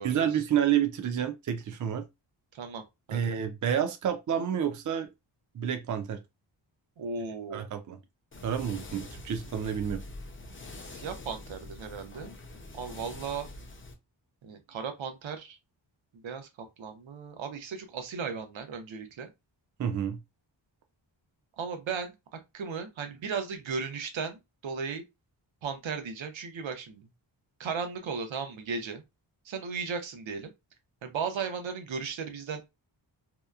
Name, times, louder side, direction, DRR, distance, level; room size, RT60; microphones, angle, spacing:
voice 1, 0.0-2.0 3.1-5.1 5.5-6.2 7.5-8.0 8.4-10.0 19.8-20.2, right 9 dB, 45° right, 0.4 m, -29 dB
voice 2, 2.5-2.8 3.1-3.3 7.0-7.6 10.9-12.3 12.7-13.5 14.4-15.6 16.2-16.5 16.8-19.3 21.6-25.0 25.6-27.1 27.6-29.0 29.4-30.5 31.0-32.6, right 5 dB, 80° right, 0.7 m, -36 dB
sound 1, 8.3-13.9, left 2 dB, 30° left, 0.5 m, -44 dB
2.8 x 2.0 x 2.3 m
wide cardioid pair, 120°, 45 cm